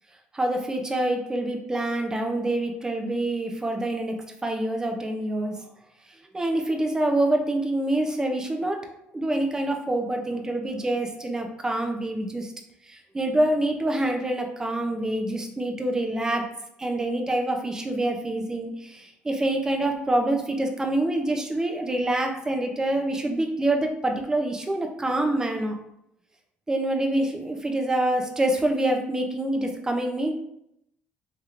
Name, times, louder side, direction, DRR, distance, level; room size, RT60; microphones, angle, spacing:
voice 1, 0.3-4.2 4.4-5.5 6.3-8.8 9.1-12.5 13.1-16.5 16.8-25.7 26.7-30.3, right 1 dB, 15° right, 3 dB, 0.5 m, -26 dB
3.2 x 2.8 x 2.4 m, 0.77 s
cardioid pair, 120°, 5 cm